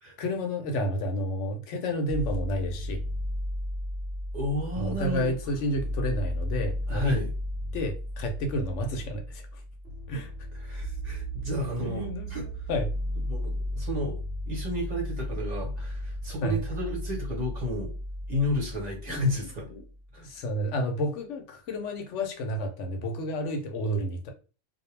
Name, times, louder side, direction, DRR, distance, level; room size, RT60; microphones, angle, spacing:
voice 1, 0.2-3.0 4.8-7.1 7.7-9.6 10.1-10.3 11.8-12.9 16.4-16.6 19.1-19.4 19.7-19.8 20.2-24.3, equal, 80° left, 0.9 m, -31 dB
sound 1, 2.1-20.0, equal, 80° right, 1.0 m, -34 dB
voice 2, 4.3-5.3 6.9-7.3 10.5-12.4 13.3-17.9 18.3-19.7 20.1-20.3, left 1 dB, 40° right, 0.9 m, -32 dB
2.3 x 2.1 x 3.1 m
omnidirectional pair, 1.2 m